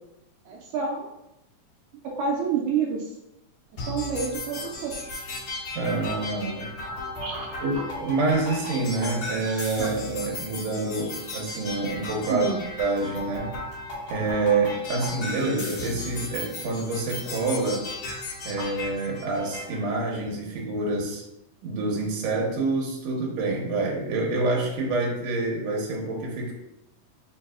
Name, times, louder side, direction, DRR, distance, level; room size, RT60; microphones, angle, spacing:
voice 1, 0.5-1.1 2.2-3.1 3.9-5.0 7.2-7.6 9.8-9.9 12.3-12.6, right 5 dB, 85° right, -1 dB, 2.0 m, -28 dB
sound 1, 3.8-19.8, left 2 dB, 50° left, 2.3 m, -36 dB
voice 2, 5.7-6.7 7.6-12.5 12.8-13.5 14.1-17.8 18.4-21.2 21.6-26.5, right 3 dB, 65° right, -1 dB, 2.0 m, -27 dB
4.6 x 4.2 x 2.3 m, 0.86 s
omnidirectional pair, 3.5 m